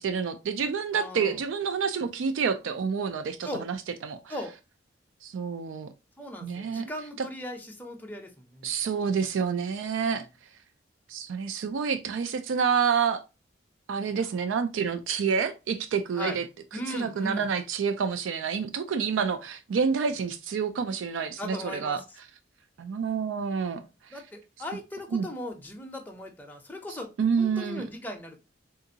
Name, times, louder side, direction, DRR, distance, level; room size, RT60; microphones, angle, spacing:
voice 1, 0.0-4.3 5.2-5.9 6.4-6.9 7.2-7.3 8.6-10.3 11.1-13.2 13.9-16.5 16.7-22.0 22.8-23.8 24.1-24.2 25.1-25.3 27.2-27.9, right 6 dB, 85° right, 0.3 m, -28 dB
voice 2, 0.9-1.4 3.4-3.7 4.3-4.5 6.2-8.7 14.1-14.3 16.2-16.4 16.7-17.5 21.4-22.0 24.1-28.4, left 1 dB, 10° left, 0.5 m, -38 dB
3.7 x 2.5 x 2.7 m
head